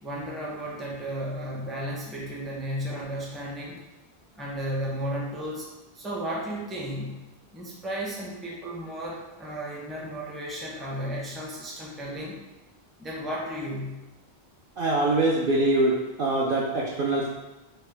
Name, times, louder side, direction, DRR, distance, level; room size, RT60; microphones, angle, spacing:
voice 1, 0.0-3.8 4.3-5.7 5.9-7.2 7.5-12.4 13.0-14.0, equal, ahead, -3 dB, 0.4 m, -34 dB
voice 2, 14.8-15.9 16.2-17.3, right 2 dB, 65° right, -4 dB, 0.7 m, -23 dB
4.3 x 2.2 x 3.3 m, 1.1 s
omnidirectional pair, 1.1 m